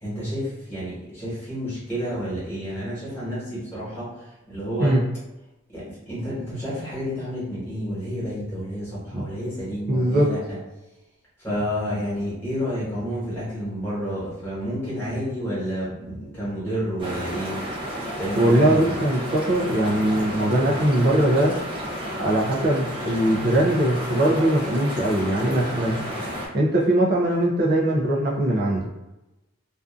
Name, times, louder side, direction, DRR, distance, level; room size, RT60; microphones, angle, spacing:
voice 1, 0.0-5.0 5.7-10.4 11.4-17.6 18.2-18.9, equal, 10° left, -10 dB, 1.3 m, -30 dB
voice 2, 9.9-10.3 18.4-21.5 22.2-26.0 26.5-28.9, right 1 dB, 45° right, -3 dB, 0.4 m, -21 dB
sound 1, 17.0-26.5, equal, 25° right, 0.7 m, -32 dB
2.5 x 2.4 x 2.4 m, 1.0 s
head